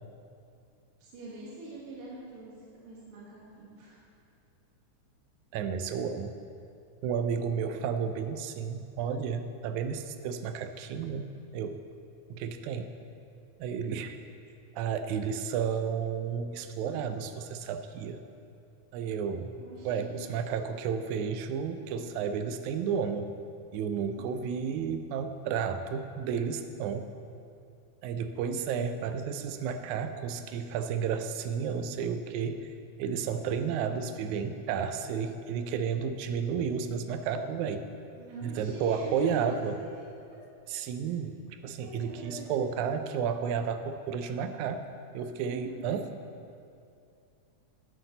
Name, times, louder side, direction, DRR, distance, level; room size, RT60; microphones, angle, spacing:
voice 1, 1.0-2.5 2.8-4.0 19.5-20.3 24.2-24.3 28.7-29.1 38.1-39.9 41.8-42.5 45.5-46.1, right 2 dB, 55° right, -7 dB, 2.2 m, -44 dB
voice 2, 5.5-6.4 7.0-11.8 12.3-12.9 13.6-14.2 14.7-18.2 18.9-19.5 19.9-23.3 23.7-27.1 28.0-32.7 33.0-37.8 38.4-39.8 40.7-44.9 45.1-46.1, right 7 dB, 85° right, 9 dB, 2.0 m, -32 dB
10.5 x 7.9 x 4.0 m, 2.5 s
omnidirectional pair, 3.4 m